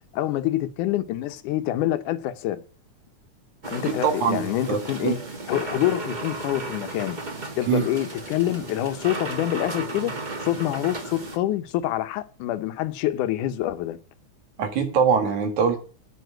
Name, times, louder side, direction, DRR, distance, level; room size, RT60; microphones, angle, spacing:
voice 1, 0.1-2.6 3.7-5.2 5.5-7.2 7.6-14.0, left 13 dB, 85° left, 2.4 m, -26 dB
sound 1, 3.6-11.4, right 2 dB, 40° right, 0.6 m, -34 dB
voice 2, 3.9-4.4 4.7-5.2 7.7-7.8 14.6-15.8, right 6 dB, 70° right, 3.2 m, -22 dB
9.3 x 8.9 x 7.7 m
omnidirectional pair, 3.5 m